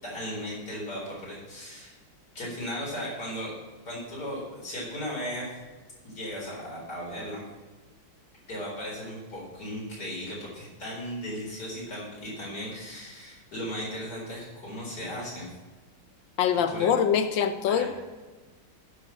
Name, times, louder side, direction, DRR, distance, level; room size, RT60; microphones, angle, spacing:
voice 1, 0.0-2.0 2.3-3.5 3.8-5.5 6.0-7.4 8.5-15.5 16.7-16.9 17.7-17.9, equal, 55° left, -4 dB, 4.8 m, -36 dB
voice 2, 16.4-17.8, left 8 dB, 75° left, 10 dB, 1.6 m, -24 dB
10.0 x 6.6 x 7.6 m, 1.3 s
omnidirectional pair, 2.1 m